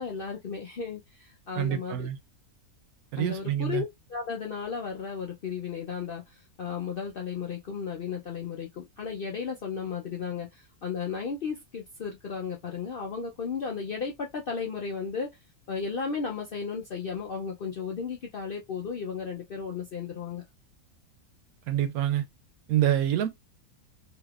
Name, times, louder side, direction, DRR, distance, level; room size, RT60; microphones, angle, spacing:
voice 1, 0.0-2.1 3.2-15.3 15.7-20.4, left 6 dB, 65° left, 0.5 m, -34 dB
voice 2, 1.6-2.2 3.1-3.8 21.7-22.2 22.7-23.3, right 11 dB, 80° right, 1.1 m, -26 dB
3.3 x 2.8 x 2.4 m
omnidirectional pair, 1.6 m